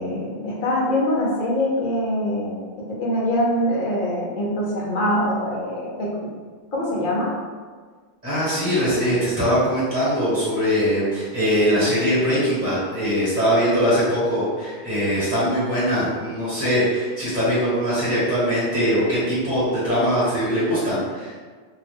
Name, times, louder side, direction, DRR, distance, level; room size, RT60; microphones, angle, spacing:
voice 1, 0.0-6.1 6.7-7.3, left 1 dB, 50° left, -5 dB, 0.9 m, -24 dB
voice 2, 8.2-21.3, equal, 10° right, -12 dB, 1.3 m, -21 dB
2.7 x 2.3 x 3.5 m, 1.5 s
omnidirectional pair, 1.2 m